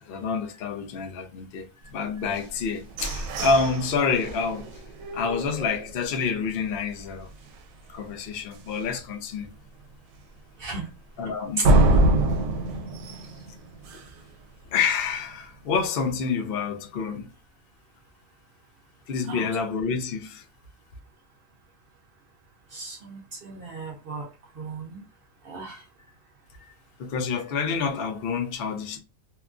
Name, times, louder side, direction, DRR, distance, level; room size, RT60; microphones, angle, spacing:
voice 1, 0.0-4.7 5.1-7.3 7.9-9.5 11.2-11.8 13.9-14.0 14.7-17.3 19.1-20.4 27.0-29.0, left 5 dB, 60° left, 0.7 m, -28 dB
sound 1, 2.4-6.2 6.7-6.8 7.2-7.6 8.0-8.1 8.5-8.6 11.6-14.3, right 1 dB, 80° right, 1.0 m, -25 dB
voice 2, 22.7-24.3 24.6-25.0 25.4-25.8, right 2 dB, 55° right, 0.7 m, -35 dB
2.9 x 2.3 x 2.4 m
omnidirectional pair, 1.4 m